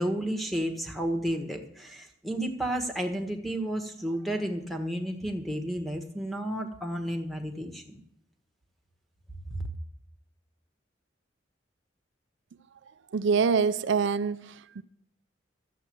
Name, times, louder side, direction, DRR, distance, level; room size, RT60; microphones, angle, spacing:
voice 1, 0.0-8.0 9.5-9.7, right 1 dB, ahead, 1.3 m, -32 dB
voice 2, 13.1-14.8, right 5 dB, 70° right, 0.4 m, -25 dB
12.5 x 8.1 x 7.7 m
head